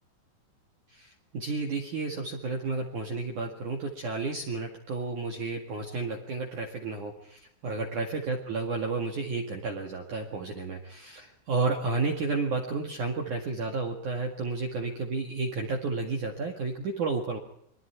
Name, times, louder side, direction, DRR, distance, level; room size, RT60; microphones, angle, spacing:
voice 1, 0.9-17.4, right 3 dB, 50° right, 2 dB, 2.8 m, -32 dB
29.0 x 23.0 x 4.7 m, 0.68 s
omnidirectional pair, 5.6 m